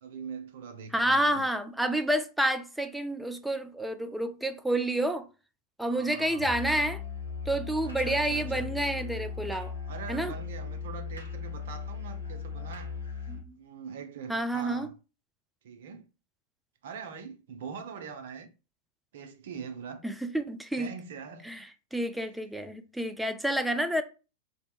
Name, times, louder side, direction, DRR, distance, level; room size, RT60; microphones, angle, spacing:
voice 1, 0.0-1.4 5.8-6.5 7.8-8.7 9.9-12.9 13.6-15.0 15.6-16.1 16.8-18.5 19.1-20.0 20.8-21.5, right 6 dB, 55° right, 0.5 m, -42 dB
voice 2, 0.9-5.3 5.8-7.0 7.5-9.7 10.1-10.3 13.3-13.6 14.3-14.9 20.0-20.9 21.4-21.6 21.9-24.0, right 1 dB, ahead, 0.3 m, -29 dB
Musical instrument, 6.4-13.5, left 5 dB, 85° right, 0.9 m, -38 dB
2.7 x 2.1 x 2.3 m
figure-of-eight pair, 90°, 0 cm